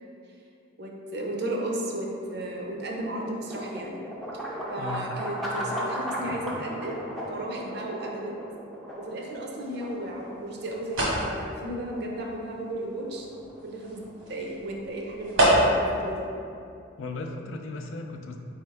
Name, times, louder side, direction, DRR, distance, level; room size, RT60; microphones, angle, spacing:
voice 1, 0.8-4.0 4.7-7.0 7.3-8.3 9.0-13.3 13.6-14.0 14.3-16.2, right 1 dB, 50° right, -1 dB, 0.6 m, -34 dB
sound 1, 1.9-16.0, equal, ahead, 0.4 m, -38 dB
voice 2, 4.8-5.1 6.2-6.3 17.0-18.4, left 3 dB, 75° left, 4 dB, 0.4 m, -36 dB
sound 2, 9.6-16.0, right 1 dB, 90° right, 1.3 m, -29 dB
4.5 x 3.5 x 3.3 m, 2.5 s
head